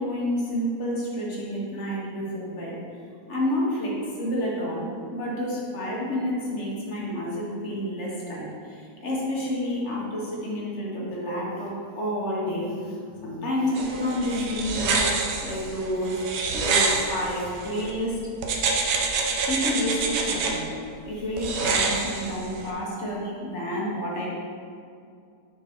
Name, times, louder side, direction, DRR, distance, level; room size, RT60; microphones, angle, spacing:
voice 1, 0.0-2.8 3.3-4.9 5.1-15.1 15.4-16.2 16.5-18.2 19.5-20.7 21.1-24.3, left 1 dB, 45° left, -4 dB, 1.2 m, -29 dB
sound 1, 13.8-17.9 18.4-20.5 21.4-22.7, right 4 dB, 85° right, 1.4 m, -27 dB
6.1 x 3.9 x 4.3 m, 2.4 s
omnidirectional pair, 1.8 m